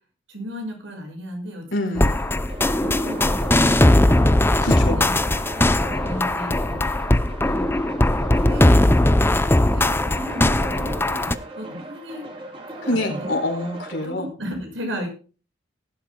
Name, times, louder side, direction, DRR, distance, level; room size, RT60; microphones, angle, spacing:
voice 1, 0.3-1.6 1.9-2.1 2.8-4.3 4.9-5.1 5.5-5.7 6.0-6.9 7.4-7.8 8.5-8.8 9.7-11.3 11.6-12.3 12.7-13.3 14.0-15.1, equal, 80° right, 3 dB, 6.4 m, -34 dB
voice 2, 1.7-2.1 4.6-5.1 12.8-14.3, left 1 dB, 80° left, 3 dB, 4.3 m, -26 dB
sound 1, 2.0-11.3, left 1 dB, 10° left, 0.5 m, -19 dB
sound 2, 2.0-14.1, right 2 dB, 30° right, 3.3 m, -37 dB
19.5 x 12.0 x 2.2 m, 0.37 s
head